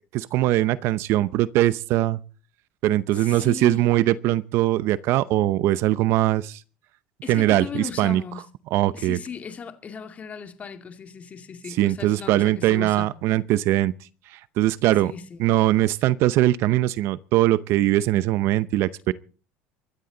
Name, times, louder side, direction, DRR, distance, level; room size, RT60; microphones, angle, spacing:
voice 1, 0.1-2.2 2.8-6.6 7.3-8.2 8.7-9.2 11.8-13.9 14.6-15.1 15.4-19.1, right 15 dB, 60° right, 0.7 m, -21 dB
voice 2, 3.1-3.9 7.2-8.5 8.9-13.1 15.0-15.5, left 6 dB, 30° left, 2.2 m, -37 dB
24.5 x 13.0 x 3.9 m
cardioid pair, 130°, 5 cm